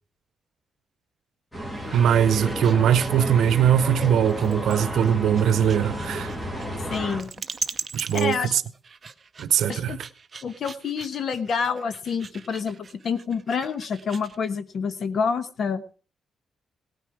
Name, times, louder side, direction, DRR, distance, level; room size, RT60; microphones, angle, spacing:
sound 1, 1.5-7.2, equal, 10° left, 2.4 m, -32 dB
sound 2, 1.7-14.4, right 5 dB, 35° right, 0.7 m, -40 dB
voice 1, 1.9-6.3 7.9-8.6 9.4-10.1, right 9 dB, 85° right, 0.8 m, -21 dB
voice 2, 6.9-7.3 8.1-8.5 9.7-10.0 10.4-15.8, left 6 dB, 55° left, 1.1 m, -28 dB
17.5 x 9.5 x 4.9 m
wide cardioid pair, 140°, 0 cm